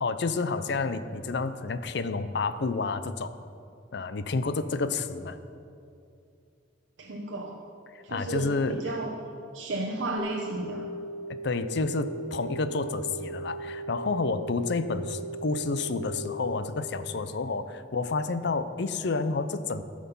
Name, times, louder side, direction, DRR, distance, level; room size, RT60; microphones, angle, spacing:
voice 1, 0.0-3.4 3.9-5.4 7.9-8.8 11.4-19.8, left 3 dB, 60° left, 12 dB, 0.5 m, -30 dB
voice 2, 7.0-7.6 8.0-9.2 9.5-10.9, right 2 dB, 75° right, -1 dB, 0.9 m, -33 dB
sound 1, 10.2-16.3, right 3 dB, ahead, 0.8 m, -38 dB
15.0 x 6.3 x 5.4 m, 2.5 s
head